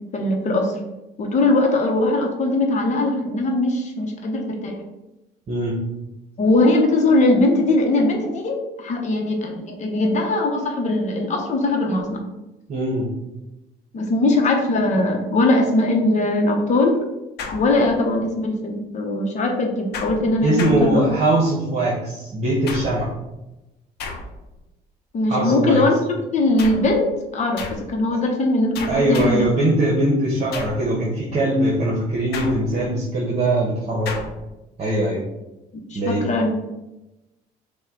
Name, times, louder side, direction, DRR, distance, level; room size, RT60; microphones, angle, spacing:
voice 1, 0.1-0.7 1.2-4.8 6.4-12.2 13.9-17.0 17.5-21.1 25.1-25.9 26.3-27.0 27.3-27.6 27.9-29.5 35.9-36.5, left 2 dB, 45° left, 2 dB, 0.8 m, -20 dB
voice 2, 5.5-5.8 12.7-13.1 20.4-23.1 25.3-25.8 28.9-34.1 34.8-35.2 35.9-36.2, right 1 dB, 40° right, -4 dB, 1.0 m, -21 dB
sound 1, 17.4-18.2 19.9-21.5 22.7-23.2 24.0-24.6 26.6-27.0 27.6-28.0 28.7-29.6 30.5-30.9 32.3-33.0 34.1-34.5, left 4 dB, 70° left, 0.7 m, -34 dB
5.4 x 2.3 x 3.7 m, 0.98 s
cardioid pair, 110°, 17 cm